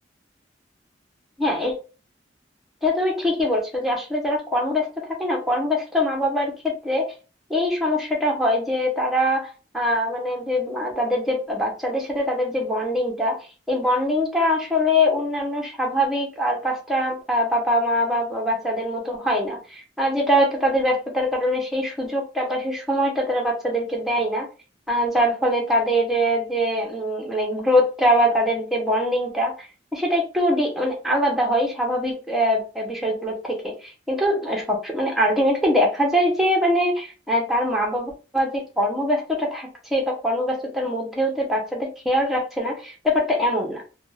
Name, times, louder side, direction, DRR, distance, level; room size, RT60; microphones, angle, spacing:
voice 1, 1.4-1.7 2.8-7.1 7.5-9.5 9.7-13.4 13.7-24.5 24.9-43.8, equal, ahead, -1 dB, 0.8 m, -23 dB
2.4 x 2.2 x 3.2 m, 0.34 s
head